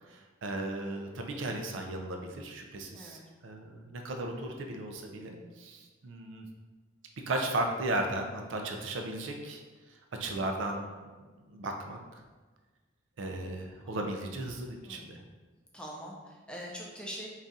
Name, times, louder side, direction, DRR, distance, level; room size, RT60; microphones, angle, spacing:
voice 1, 0.0-6.5 7.3-9.6 9.9-10.8 11.2-12.0 13.2-15.2, right 2 dB, 75° right, 3 dB, 0.4 m, -36 dB
voice 2, 2.9-3.3 13.8-14.0 14.8-15.2 15.7-17.3, equal, 5° left, -3 dB, 0.4 m, -43 dB
3.9 x 2.4 x 3.9 m, 1.3 s
head